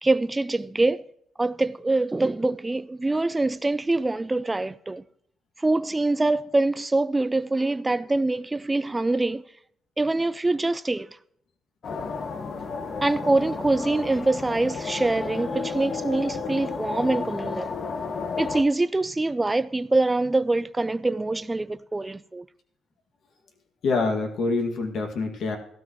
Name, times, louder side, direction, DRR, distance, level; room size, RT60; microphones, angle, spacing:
voice 1, 0.0-1.1 1.4-5.0 5.6-9.4 10.0-11.1 13.0-17.7 18.4-22.4, right 2 dB, 15° right, 0.4 m, -24 dB
sound 1, 11.8-18.6, left 4 dB, 50° left, 1.2 m, -32 dB
voice 2, 23.8-25.6, left 3 dB, 65° left, 2.1 m, -25 dB
15.5 x 12.5 x 3.1 m
cardioid pair, 90°, 0 cm